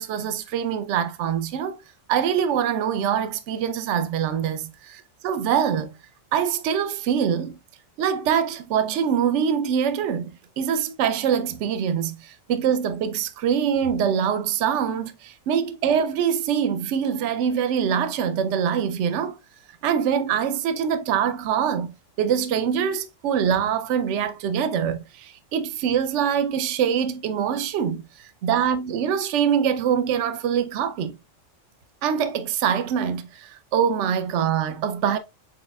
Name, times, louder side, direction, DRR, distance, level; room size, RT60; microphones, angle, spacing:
voice 1, 0.0-1.8 2.1-5.9 6.3-7.6 8.0-19.3 19.8-31.1 32.0-35.2, right 8 dB, 70° right, 0.9 m, -24 dB
4.7 x 4.2 x 2.2 m
omnidirectional pair, 1.3 m